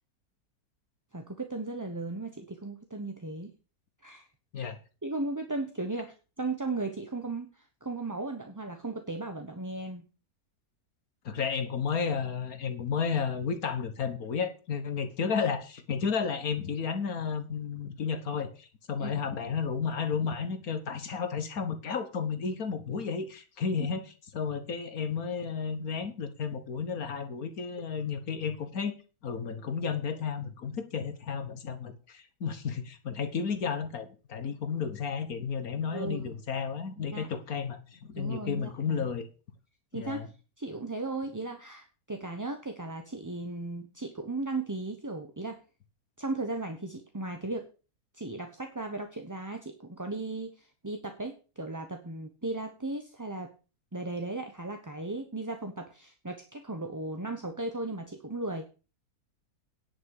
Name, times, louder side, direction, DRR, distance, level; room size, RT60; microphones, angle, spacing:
voice 1, 1.1-3.5 4.0-4.3 4.6-4.7 5.0-10.1 19.0-19.1 35.9-36.2 37.0-37.3 38.2-39.1 39.9-40.3 40.6-45.6 46.2-47.6 48.1-53.5 53.9-58.6, right 2 dB, 15° right, 5 dB, 0.9 m, -36 dB
voice 2, 11.2-24.0 24.3-28.9 29.2-39.3 39.9-40.3, left 6 dB, 70° left, 10 dB, 1.7 m, -32 dB
10.5 x 6.0 x 6.6 m, 0.34 s
omnidirectional pair, 1.6 m